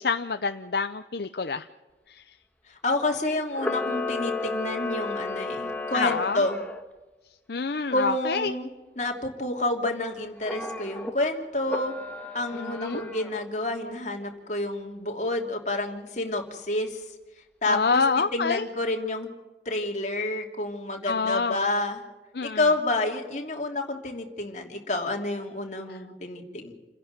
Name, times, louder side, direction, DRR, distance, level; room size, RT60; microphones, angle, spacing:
voice 1, 0.0-1.7 2.1-2.2 5.9-6.4 7.5-8.5 12.6-13.1 17.7-18.7 21.1-21.6 22.3-22.6, left 4 dB, 65° left, 9 dB, 0.7 m, -27 dB
voice 2, 2.7-6.6 7.5-7.6 7.9-8.7 9.0-11.9 12.3-17.0 17.6-18.0 18.3-19.3 19.6-22.1 22.4-26.7, left 2 dB, 40° left, 2 dB, 2.9 m, -29 dB
Camera, 3.5-6.8 10.4-11.1 11.6-13.5, left 3 dB, 10° left, 1.5 m, -33 dB
29.0 x 11.0 x 9.0 m, 1.2 s
head